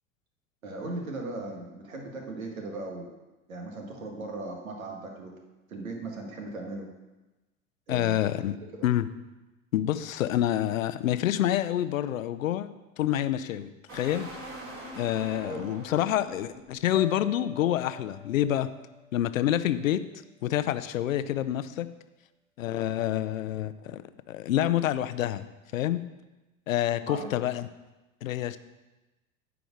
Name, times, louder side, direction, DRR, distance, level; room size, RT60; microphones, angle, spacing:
voice 1, 0.6-3.1 3.5-5.3 5.7-6.9 7.9-8.2 8.5-8.9 15.4-15.7 27.0-27.3, right 2 dB, 75° right, 2 dB, 1.9 m, -38 dB
voice 2, 7.9-8.6 8.8-9.1 9.7-12.7 13.0-14.3 14.9-18.7 19.1-20.0 20.4-21.9 22.6-24.0 24.3-25.4 25.7-26.0 26.7-27.7 28.2-28.6, left 12 dB, 70° left, 13 dB, 0.7 m, -27 dB
sound 1, 13.9-16.9, right 1 dB, 30° right, 3.1 m, -43 dB
sound 2, 16.9-20.0, left 2 dB, ahead, 0.4 m, -46 dB
9.5 x 5.1 x 7.4 m, 1.1 s
figure-of-eight pair, 80°, 41 cm